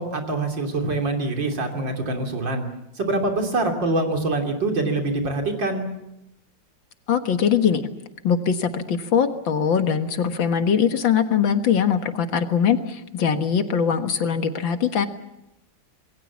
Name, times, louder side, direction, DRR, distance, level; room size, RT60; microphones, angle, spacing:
voice 1, 0.0-2.6 3.0-5.9, right 2 dB, 75° right, 3 dB, 3.8 m, -24 dB
voice 2, 7.1-7.9 8.2-15.1, left 7 dB, 90° left, 7 dB, 2.3 m, -21 dB
27.5 x 21.0 x 7.3 m, 0.89 s
omnidirectional pair, 2.0 m